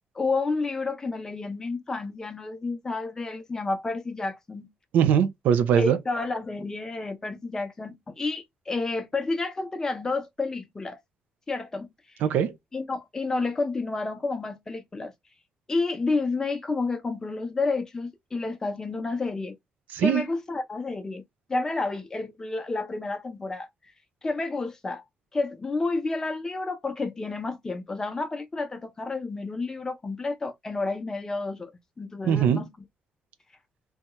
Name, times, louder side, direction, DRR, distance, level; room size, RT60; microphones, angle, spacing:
voice 1, 0.1-4.7 5.8-11.0 11.5-11.9 12.7-15.1 15.7-19.6 20.0-21.2 21.5-23.7 24.2-25.0 25.3-31.7 32.0-32.7, left 3 dB, 20° left, 0.6 m, -30 dB
voice 2, 4.9-6.0 12.2-12.5 19.9-20.2 32.2-32.6, right 8 dB, 85° right, 0.5 m, -21 dB
2.8 x 2.3 x 3.0 m
cardioid pair, 130°, 3 cm